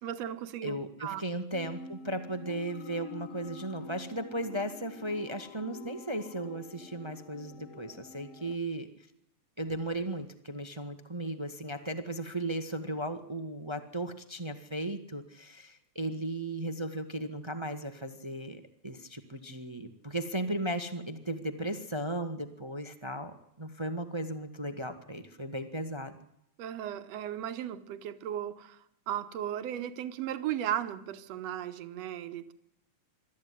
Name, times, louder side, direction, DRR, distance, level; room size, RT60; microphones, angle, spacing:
voice 1, 0.0-1.2 26.6-28.8 29.1-32.5, right 10 dB, 65° right, 2.2 m, -36 dB
voice 2, 0.6-8.9 9.6-26.2, right 1 dB, 25° right, 0.5 m, -36 dB
sound 1, 1.5-8.6, left 4 dB, 65° left, 1.9 m, -48 dB
24.5 x 13.5 x 9.9 m
omnidirectional pair, 3.3 m